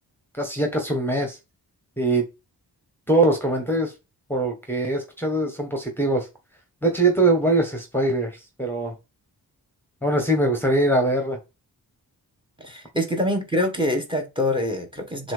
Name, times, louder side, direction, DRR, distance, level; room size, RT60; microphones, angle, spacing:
voice 1, 0.4-1.4 2.0-2.2 3.1-3.9 4.3-6.3 6.8-8.9 10.0-11.4, right 2 dB, 5° left, 1.3 m, -22 dB
voice 2, 12.6-15.3, left 1 dB, 15° right, 1.5 m, -25 dB
7.2 x 2.8 x 5.0 m
wide cardioid pair, 140°, 38 cm